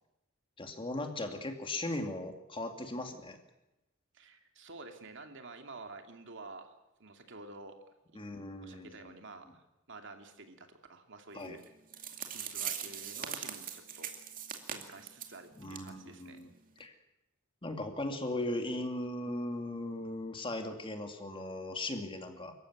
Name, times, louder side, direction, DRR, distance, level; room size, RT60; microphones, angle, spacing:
voice 1, 0.6-3.4 8.2-9.1 11.3-11.6 15.6-16.5 16.8-16.9 17.6-22.5, left 1 dB, 25° left, 5 dB, 2.4 m, -38 dB
voice 2, 4.1-6.7 7.0-7.8 8.6-11.6 12.3-14.1 14.7-16.5, right 3 dB, 65° right, 5 dB, 2.6 m, -50 dB
sound 1, 11.6-11.7 11.9-15.4 15.7-15.9 16.2-16.3 16.8-16.9, right 8 dB, 45° right, 2.5 m, -40 dB
25.0 x 14.5 x 9.5 m, 0.94 s
head